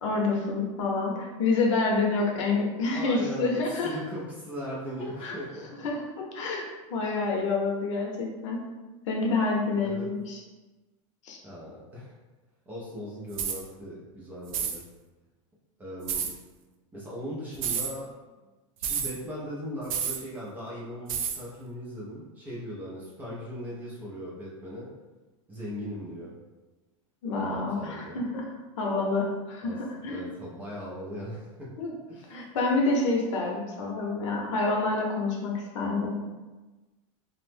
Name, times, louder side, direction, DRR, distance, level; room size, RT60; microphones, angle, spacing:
voice 1, 0.0-4.0 5.2-5.4 5.8-8.6 9.1-10.4 11.2-11.4 27.2-30.2 31.8-31.9 32.3-36.2, left 3 dB, 65° left, -1 dB, 0.7 m, -28 dB
voice 2, 2.9-5.9 9.8-10.1 11.4-12.1 12.7-14.8 15.8-16.3 16.9-18.1 18.8-24.9 25.5-26.3 27.4-28.2 29.6-29.8 30.0-31.7 32.1-32.4, equal, 10° right, -7 dB, 0.3 m, -39 dB
sound 1, 13.3-13.6 14.5-14.8 16.1-16.3 17.6-17.9 18.8-19.1 19.9-20.2 21.1-21.4, right 7 dB, 85° right, 0.5 m, -30 dB
2.9 x 2.0 x 3.2 m, 1.2 s
supercardioid pair, 170°, 17 cm